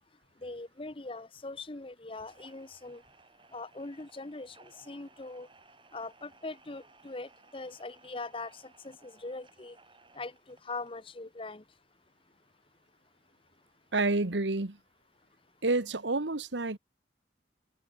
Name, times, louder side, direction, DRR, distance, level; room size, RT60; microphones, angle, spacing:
voice 1, 0.4-3.0 3.5-5.5 5.9-8.5 8.8-9.8 10.1-11.6, left 3 dB, 30° left, 0.9 m, -41 dB
sound 1, 2.1-11.1, right 3 dB, 25° right, 6.5 m, -61 dB
voice 2, 13.9-14.8 15.6-16.8, right 2 dB, 80° right, 1.4 m, -29 dB
head